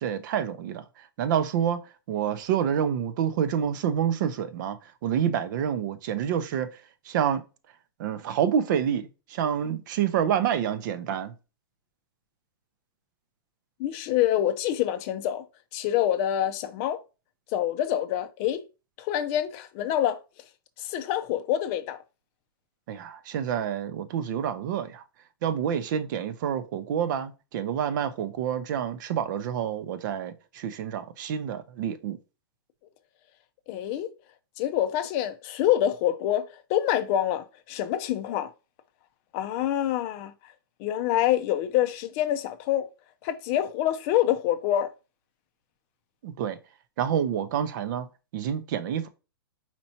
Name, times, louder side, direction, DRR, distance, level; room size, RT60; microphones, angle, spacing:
voice 1, 0.0-0.8 1.2-1.8 2.1-6.8 7.1-7.4 8.0-11.3 22.9-25.0 25.4-32.2 46.2-46.6 47.0-48.1 48.3-49.1, right 9 dB, 50° right, 0.6 m, -28 dB
voice 2, 13.8-15.4 15.7-17.0 17.5-18.6 19.0-20.2 20.8-22.0 33.7-34.1 34.6-38.5 39.3-40.3 40.8-42.9 43.2-44.9, left 11 dB, 35° left, 0.5 m, -26 dB
4.4 x 4.2 x 2.8 m
hypercardioid pair, 140°, 13 cm